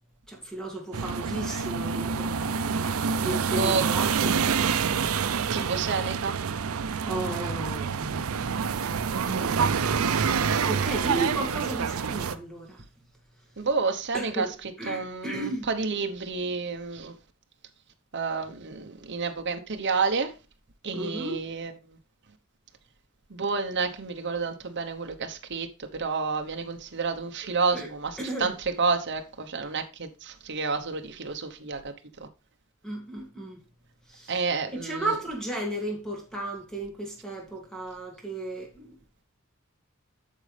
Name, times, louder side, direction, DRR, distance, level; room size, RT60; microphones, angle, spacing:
voice 1, 0.3-2.5 3.2-5.1 7.0-8.7 9.2-9.9 10.7-12.8 14.1-14.5 14.8-15.7 20.9-21.5 27.7-27.9 28.2-28.5 32.8-33.6 34.1-34.3 34.8-39.0, right 2 dB, 5° left, 2.5 m, -34 dB
sound 1, 0.9-12.4, right 6 dB, 75° right, 0.5 m, -27 dB
voice 2, 5.5-6.3 9.5-9.9 13.6-14.5 14.9-17.1 18.1-20.3 20.8-22.0 23.3-25.7 25.9-31.9 32.2-32.3 34.3-35.1, right 4 dB, 55° right, 1.0 m, -30 dB
9.0 x 6.4 x 3.3 m
head